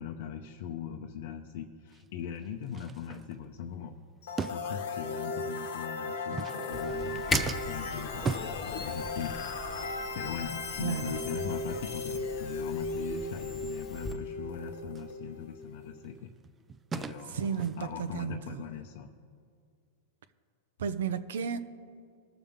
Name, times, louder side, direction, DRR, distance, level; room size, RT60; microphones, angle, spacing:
voice 1, 0.0-4.0 4.5-9.4 9.7-16.3 16.9-19.1, left 8 dB, 65° left, 2 dB, 0.7 m, -40 dB
sound 1, 1.9-2.0 2.7-3.7 4.4-5.2 6.2-9.4 9.7-9.9 10.2-10.4 10.8-10.9 11.3-11.5 11.8-11.9 12.3-12.4 12.9-13.0 14.9-15.1 15.6-18.1, right 5 dB, 20° right, 0.4 m, -39 dB
sound 2, 4.2-16.1, left 3 dB, 85° left, 1.1 m, -37 dB
Camera, 6.7-14.1, left 2 dB, 15° left, 1.2 m, -39 dB
voice 2, 17.3-18.6 20.8-21.6, right 7 dB, 90° right, 12 dB, 0.7 m, -33 dB
20.5 x 7.0 x 3.7 m, 2.2 s
supercardioid pair, 145°, 0 cm